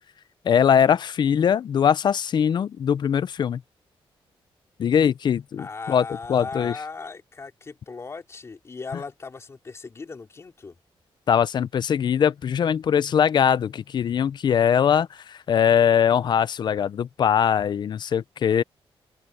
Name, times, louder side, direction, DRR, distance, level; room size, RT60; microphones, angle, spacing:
voice 1, 0.4-3.6 4.8-6.7 11.3-18.6, left 8 dB, 50° left, 0.5 m, -21 dB
voice 2, 5.6-10.8, left 4 dB, 30° left, 3.1 m, -37 dB
wide cardioid pair, 175°, 10 cm